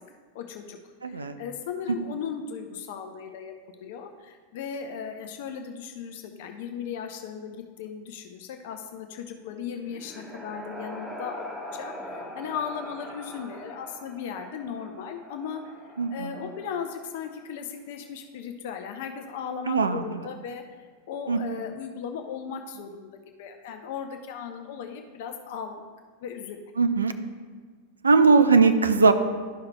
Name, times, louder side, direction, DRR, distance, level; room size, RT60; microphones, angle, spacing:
voice 1, 0.3-0.8 1.0-11.5 11.7-15.7 16.1-23.1 23.4-25.8 26.2-26.6, left 7 dB, 50° left, 5 dB, 0.6 m, -37 dB
voice 2, 1.0-1.4 16.0-16.3 19.7-20.0 21.3-21.4 26.8-27.1 28.0-29.1, right 4 dB, 75° right, 9 dB, 0.5 m, -19 dB
sound 1, 9.5-17.3, equal, 10° right, 1.1 m, -42 dB
12.0 x 5.6 x 2.2 m, 1.5 s
figure-of-eight pair, 90°, 0 cm